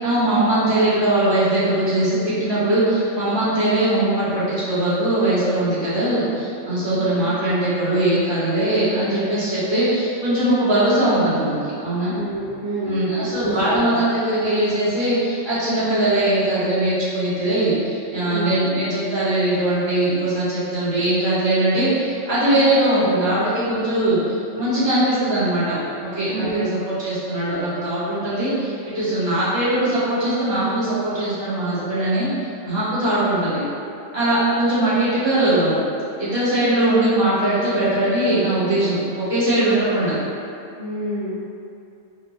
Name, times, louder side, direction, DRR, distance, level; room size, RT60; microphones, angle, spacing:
voice 1, 0.0-12.1 12.8-32.3 32.6-33.6 34.1-35.8 36.2-40.2, right 1 dB, 25° right, -12 dB, 0.9 m, -20 dB
voice 2, 6.9-7.2 12.1-13.9 18.3-18.5 26.3-26.6 40.8-41.3, right 1 dB, 65° right, -10 dB, 0.4 m, -27 dB
3.7 x 2.2 x 3.0 m, 2.5 s
omnidirectional pair, 1.4 m